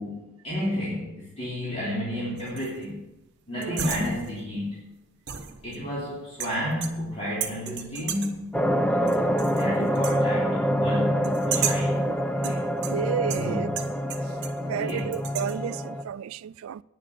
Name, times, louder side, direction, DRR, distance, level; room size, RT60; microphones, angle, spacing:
voice 1, 0.0-3.0 3.5-4.9 5.6-8.5 9.3-12.6 12.8-13.7 14.6-15.2, equal, 30° left, 3.3 m, -32 dB
sound 1, 2.4-2.8 3.6-4.5 5.3-6.0 6.4-7.1 7.4-8.4 9.1-9.7 9.9-10.2 11.2-12.0 12.4-14.6 14.9-15.6, right 8 dB, 55° right, 1.1 m, -34 dB
voice 2, 3.5-3.8 9.8-9.9 12.4-12.5 12.9-13.7 14.6-16.8, right 8 dB, 75° right, 0.3 m, -32 dB
sound 2, 8.5-16.0, equal, 5° left, 0.6 m, -26 dB
9.9 x 7.5 x 8.2 m
head